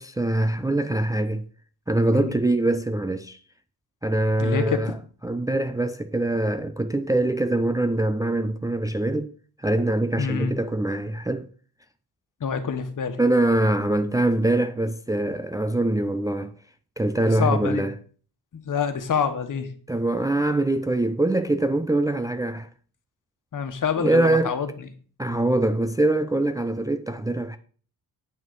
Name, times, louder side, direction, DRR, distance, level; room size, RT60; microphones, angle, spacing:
voice 1, 0.0-1.4 1.9-3.4 4.0-4.9 5.2-9.3 9.6-11.5 13.2-16.5 17.0-17.9 19.9-22.7 24.0-24.6 25.2-27.6, right 2 dB, 10° right, 0.5 m, -23 dB
voice 2, 4.4-4.9 10.2-10.5 12.4-13.2 17.2-17.8 18.5-19.7 23.5-24.7, left 6 dB, 50° left, 1.5 m, -26 dB
8.9 x 6.5 x 5.3 m
cardioid pair, 115°, 39 cm